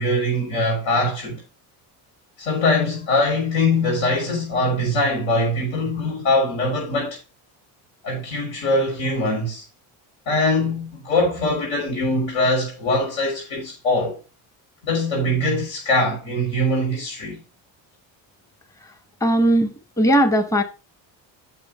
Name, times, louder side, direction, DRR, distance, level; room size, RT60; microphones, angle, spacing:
voice 1, 0.0-1.4 2.4-7.2 8.0-9.7 10.3-14.2 14.8-17.4, left 1 dB, 75° left, 3.6 m, -22 dB
voice 2, 19.2-20.6, right 1 dB, 5° left, 1.1 m, -18 dB
7.7 x 6.1 x 4.5 m
cardioid pair, 95°, 47 cm